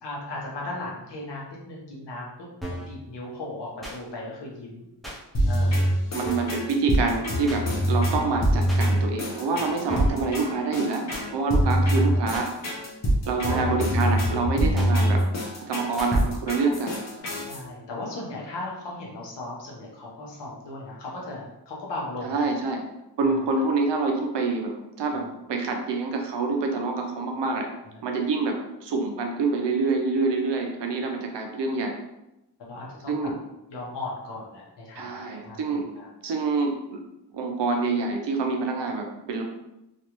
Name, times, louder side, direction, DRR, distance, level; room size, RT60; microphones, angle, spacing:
voice 1, 0.0-4.8 5.5-5.9 7.0-7.3 11.6-12.3 13.5-14.0 17.4-22.5 23.2-23.4 27.9-28.0 32.6-33.3 33.7-36.1, left 2 dB, 80° left, -3 dB, 1.0 m, -37 dB
sound 1, 2.6-3.0 3.8-4.0 5.0-5.2 6.2-6.6 7.5-7.6 8.7-8.9 9.9-10.3 11.1-11.3 12.3-12.5 13.5-13.9 14.8-14.9 16.0-16.1, equal, ahead, 0.5 m, -35 dB
sound 2, 5.3-17.6, equal, 40° left, 0.8 m, -24 dB
voice 2, 6.1-12.5 13.3-15.3 15.6-17.0 22.2-22.8 23.2-27.7 28.0-32.0 33.1-33.4 35.0-35.9 36.2-37.0 37.3-39.4, right 3 dB, 80° right, 3 dB, 0.7 m, -26 dB
3.2 x 2.5 x 3.0 m, 0.90 s
wide cardioid pair, 165°, 42 cm